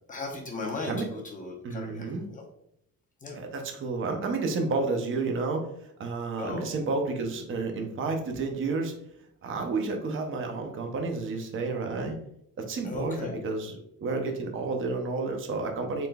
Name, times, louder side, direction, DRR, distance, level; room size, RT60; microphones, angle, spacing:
voice 1, 0.1-2.4 3.2-3.4 6.4-6.7 12.8-13.4, left 3 dB, 25° left, -2 dB, 0.8 m, -37 dB
voice 2, 1.6-2.2 3.3-5.7 6.0-8.9 9.4-12.2 12.6-16.1, right 3 dB, 40° right, 4 dB, 0.6 m, -31 dB
3.8 x 3.8 x 2.2 m, 0.75 s
cardioid pair, 145°, 34 cm